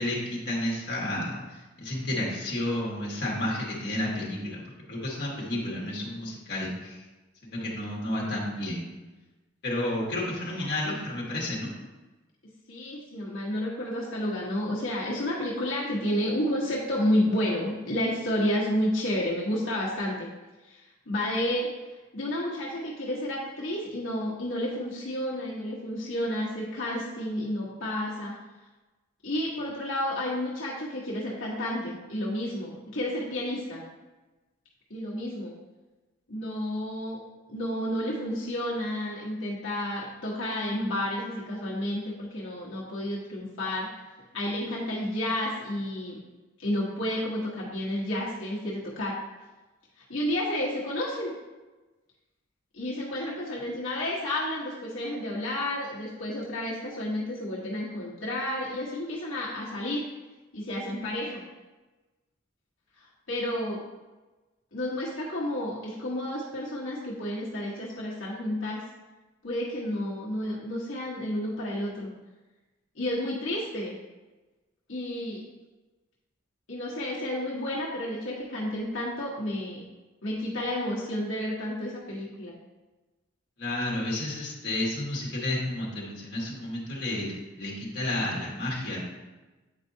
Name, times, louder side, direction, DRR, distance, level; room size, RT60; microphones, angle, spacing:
voice 1, 0.0-4.6 4.9-7.0 7.4-8.8 9.6-11.7 83.6-89.0, left 1 dB, 55° left, -4 dB, 1.5 m, -31 dB
voice 2, 12.7-20.3 20.6-21.7 22.1-28.3 29.2-33.8 34.9-35.5 36.3-37.2 37.5-43.9 44.3-46.2 46.6-49.1 50.1-51.3 52.7-60.0 60.5-61.4 63.3-63.8 64.7-68.8 69.4-72.1 73.0-73.9 74.9-75.4 76.7-79.8 80.2-82.5, left 1 dB, 80° left, -6 dB, 1.2 m, -31 dB
8.1 x 4.5 x 2.7 m, 1.2 s
head